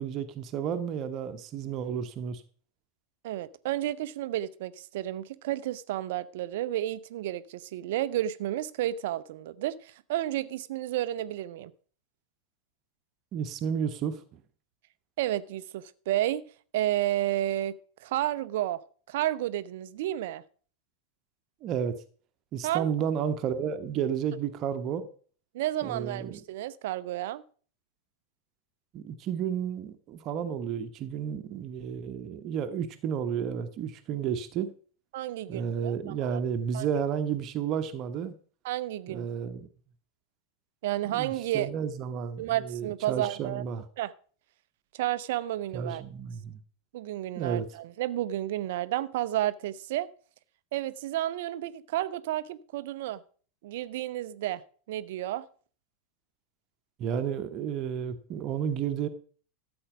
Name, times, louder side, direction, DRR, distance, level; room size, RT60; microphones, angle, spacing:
voice 1, 0.0-2.4 13.3-14.4 21.6-21.9 22.5-25.1 25.8-26.4 28.9-34.7 35.5-38.4 39.1-39.7 41.1-43.8 45.7-46.6 47.4-47.7 57.0-59.1, right 8 dB, 35° right, 1.1 m, -32 dB
voice 2, 3.2-11.7 15.2-16.5 16.7-18.8 19.1-20.4 22.6-22.9 25.5-27.4 35.1-36.4 36.7-36.9 38.6-39.3 40.8-41.7 42.4-43.6 44.0-44.1 44.9-46.0 46.9-50.1 50.7-53.2 53.6-54.6 54.9-55.5, right 13 dB, 55° right, 0.6 m, -31 dB
13.0 x 7.9 x 5.1 m
figure-of-eight pair, 90°, 0 cm